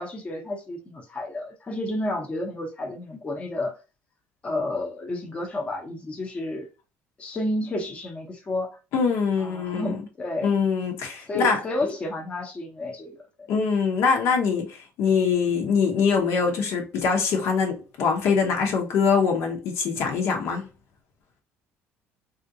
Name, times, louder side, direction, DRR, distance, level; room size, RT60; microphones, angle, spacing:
voice 1, 0.0-3.7 4.4-6.7 7.2-8.8 9.4-10.5 11.3-13.5, left 1 dB, 25° left, 0.8 m, -31 dB
voice 2, 8.9-10.0 10.4-11.9 13.5-20.7, left 5 dB, 65° left, 0.9 m, -23 dB
3.6 x 2.5 x 2.7 m
cardioid pair, 130°, 5 cm